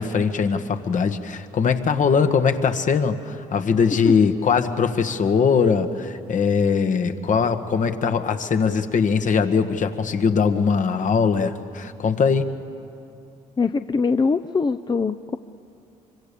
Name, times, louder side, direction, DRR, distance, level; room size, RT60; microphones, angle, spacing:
voice 1, 0.0-12.5, left 5 dB, 55° left, 7 dB, 1.6 m, -21 dB
voice 2, 13.6-15.4, left 4 dB, 25° left, 10 dB, 0.7 m, -22 dB
25.5 x 24.0 x 6.9 m, 2.7 s
hypercardioid pair, 55°, 16 cm